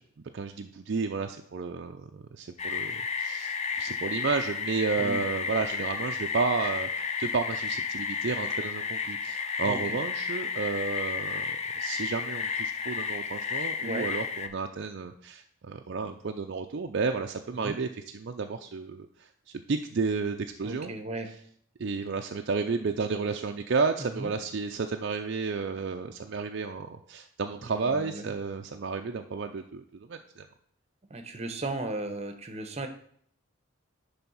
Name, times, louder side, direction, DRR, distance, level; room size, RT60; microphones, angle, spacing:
voice 1, 0.3-17.9 18.1-20.9 21.8-30.5, right 4 dB, 55° right, 4 dB, 0.4 m, -32 dB
sound 1, 2.6-14.5, left 5 dB, 30° left, 0.5 m, -32 dB
voice 2, 9.6-10.0 13.8-14.1 17.5-17.8 20.6-21.3 24.0-24.3 27.6-28.4 31.1-32.9, right 2 dB, 30° right, 8 dB, 0.8 m, -36 dB
10.5 x 3.5 x 5.5 m, 0.62 s
head